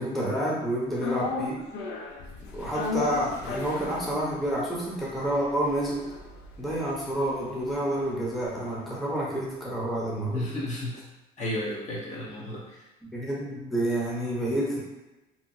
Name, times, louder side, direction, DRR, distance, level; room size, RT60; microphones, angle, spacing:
voice 1, 0.0-1.6 2.5-6.0 6.6-10.4 13.1-14.8, right 1 dB, ahead, -6 dB, 0.8 m, -29 dB
sound 1, 1.0-9.3 9.6-9.7, left 4 dB, 85° left, 0.4 m, -37 dB
voice 2, 10.3-11.0 11.4-12.8, left 1 dB, 45° left, -4 dB, 0.8 m, -33 dB
2.8 x 2.4 x 2.6 m, 1.0 s
cardioid pair, 110°, 17 cm